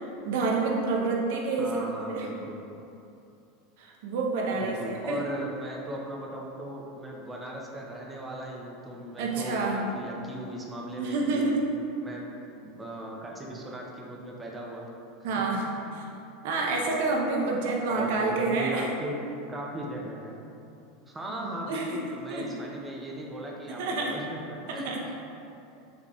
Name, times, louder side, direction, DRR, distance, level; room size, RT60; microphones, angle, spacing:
voice 1, 0.0-1.8 2.1-2.3 3.8-5.2 9.2-9.8 11.0-11.6 15.2-16.1 16.4-18.9 21.4-22.0 22.3-22.5 23.8-24.2 24.8-25.0, right 3 dB, 70° right, -1 dB, 0.5 m, -28 dB
voice 2, 1.6-2.6 4.5-11.6 12.0-12.3 12.6-14.9 15.8-16.0 17.6-19.2 19.5-20.4 21.1-25.2, right 1 dB, 15° right, -1 dB, 0.5 m, -38 dB
3.8 x 3.4 x 2.2 m, 2.8 s
supercardioid pair, 125°, 0 cm